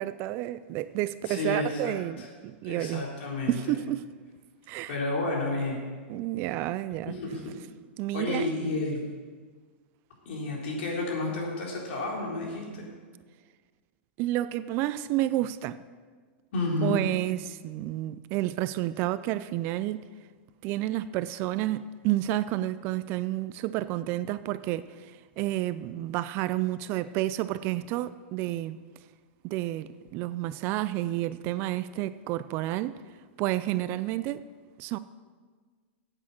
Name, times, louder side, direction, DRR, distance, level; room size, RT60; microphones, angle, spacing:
voice 1, 0.0-3.1 3.5-4.0 4.7-5.0 6.1-7.2 8.0-8.5 14.2-15.8 16.8-20.0 20.6-28.8 29.4-33.0 33.4-34.5 34.8-35.0, right 15 dB, 35° right, 0.3 m, -30 dB
voice 2, 1.2-2.3 2.6-3.6 4.9-5.8 7.1-7.5 8.1-9.0 10.3-12.9 16.5-17.0, left 2 dB, 65° left, 3.9 m, -31 dB
9.5 x 8.6 x 7.3 m
supercardioid pair, 155°, 7 cm